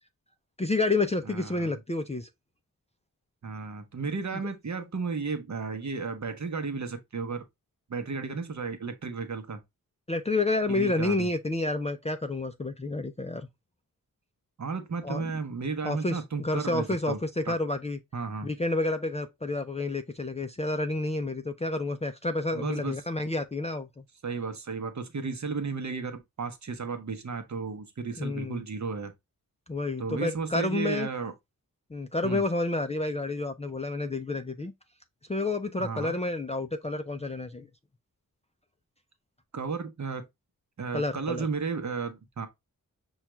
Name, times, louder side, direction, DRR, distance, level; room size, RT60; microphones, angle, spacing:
voice 1, 0.6-2.3 10.1-13.5 15.0-15.3 15.8-18.0 18.4-24.0 28.2-28.6 29.7-31.1 31.9-34.7 35.3-37.7 40.9-41.5, left 2 dB, 20° left, 0.4 m, -29 dB
voice 2, 1.3-1.7 3.4-7.4 7.9-9.6 10.7-11.3 14.6-17.2 17.5-17.6 18.1-18.5 22.5-23.0 24.2-29.1 30.0-31.3 32.2-32.4 35.8-36.1 39.5-40.3 40.8-42.5, right 4 dB, 55° right, 0.8 m, -34 dB
5.6 x 2.4 x 3.0 m
wide cardioid pair, 85°, 35 cm